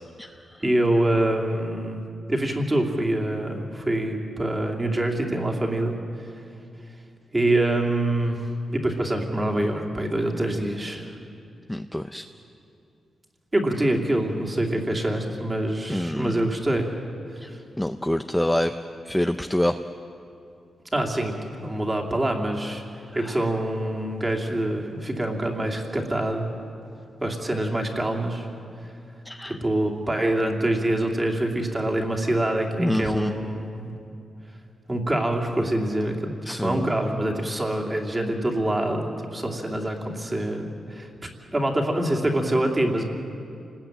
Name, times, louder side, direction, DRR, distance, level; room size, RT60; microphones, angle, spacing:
voice 1, 0.6-2.0 2.3-6.0 7.3-11.1 13.5-16.9 17.4-17.6 20.9-21.3 21.6-22.8 23.1-26.5 27.2-28.5 29.6-33.9 34.9-36.3 36.6-43.0, right 1 dB, 15° right, 1 dB, 2.7 m, -25 dB
voice 2, 11.7-12.2 15.9-16.5 17.4-17.5 17.8-18.8 19.1-19.8 23.2-23.3 29.3-29.6 32.8-33.3 36.5-36.9, left 1 dB, 5° left, 7 dB, 0.5 m, -26 dB
29.0 x 20.0 x 9.0 m, 2.6 s
wide cardioid pair, 165°, 0 cm